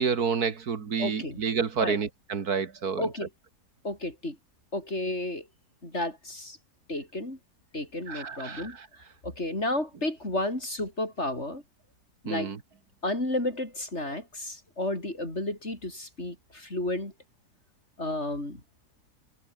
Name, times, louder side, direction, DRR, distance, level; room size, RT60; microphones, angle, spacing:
voice 1, 0.0-3.1 8.1-8.9 12.3-12.6, right 6 dB, 65° right, 2.2 m, -29 dB
voice 2, 1.0-1.4 1.8-2.0 3.0-3.3 3.8-4.4 4.7-5.5 5.8-6.6 6.9-7.4 7.7-8.8 9.2-11.6 12.2-12.5 13.0-17.1 18.0-18.6, left 1 dB, 40° left, 6.9 m, -32 dB
omnidirectional pair, 1.7 m